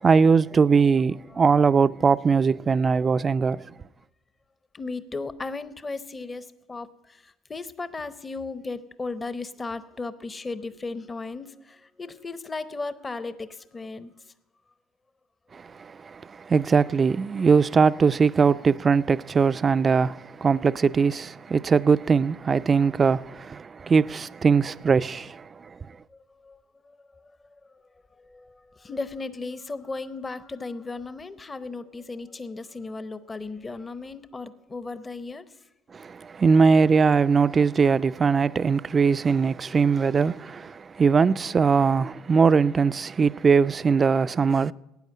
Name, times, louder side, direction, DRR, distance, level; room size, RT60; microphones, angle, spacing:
voice 1, 0.0-3.6 15.5-25.5 35.9-44.7, right 5 dB, 30° right, 0.4 m, -21 dB
voice 2, 1.3-1.6 4.7-14.3 26.1-27.8 28.2-35.6, left 3 dB, 25° left, 0.7 m, -36 dB
13.0 x 9.0 x 8.3 m
hypercardioid pair, 75°, 0 cm